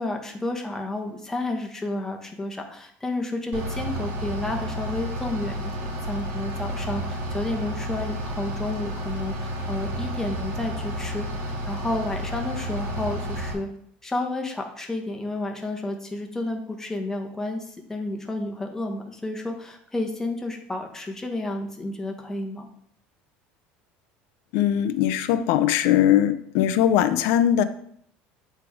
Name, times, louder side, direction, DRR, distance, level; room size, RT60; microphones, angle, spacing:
voice 1, 0.0-13.7 14.0-22.7, left 2 dB, 10° left, 3 dB, 1.1 m, -31 dB
Bus / Idling, 3.5-13.5, equal, 55° right, 2.0 m, -31 dB
voice 2, 24.5-27.6, left 11 dB, 75° left, 12 dB, 0.5 m, -20 dB
7.6 x 3.3 x 4.8 m, 0.67 s
supercardioid pair, 120°, 5 cm